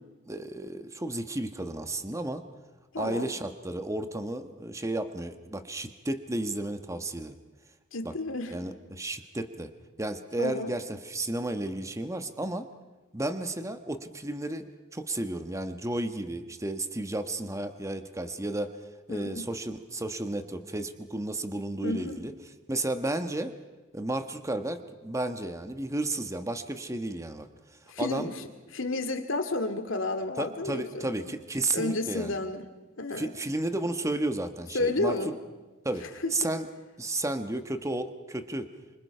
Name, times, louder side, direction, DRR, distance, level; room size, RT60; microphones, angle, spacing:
voice 1, 0.3-2.4 3.0-7.4 8.0-8.1 8.5-9.7 10.0-12.7 13.1-14.7 14.9-18.7 19.1-22.3 22.7-23.5 23.9-27.5 28.0-28.3 30.4-32.3 33.2-35.2 35.8-36.1 36.3-36.7 37.0-38.7, right 2 dB, 15° right, 8 dB, 1.3 m, -32 dB
voice 2, 2.9-3.3 7.9-8.6 10.4-10.7 19.1-19.5 21.8-22.2 27.9-28.5 28.7-31.4 31.7-32.7 33.0-33.3 34.7-35.4 36.0-36.3, left 2 dB, 75° left, 6 dB, 2.3 m, -31 dB
28.5 x 25.5 x 5.7 m, 1.2 s
head